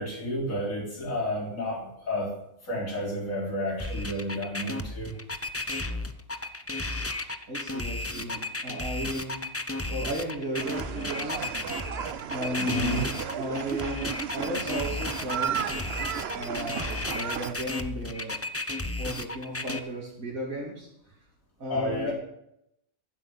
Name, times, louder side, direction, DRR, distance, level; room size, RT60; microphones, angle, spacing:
voice 1, 0.0-2.3 2.6-5.2 12.6-13.0 21.7-22.1, left 1 dB, 65° left, -2 dB, 4.1 m, -31 dB
sound 1, 3.8-19.8, left 2 dB, 15° left, 0.5 m, -33 dB
voice 2, 7.5-9.4 9.9-11.5 12.3-13.0 13.3-15.6 16.3-18.4 19.0-20.9 21.6-22.1, right 1 dB, 75° right, -4 dB, 3.4 m, -34 dB
sound 2, 10.5-17.5, right 8 dB, 55° right, 0.9 m, -34 dB
15.0 x 8.1 x 7.3 m, 0.80 s
omnidirectional pair, 1.5 m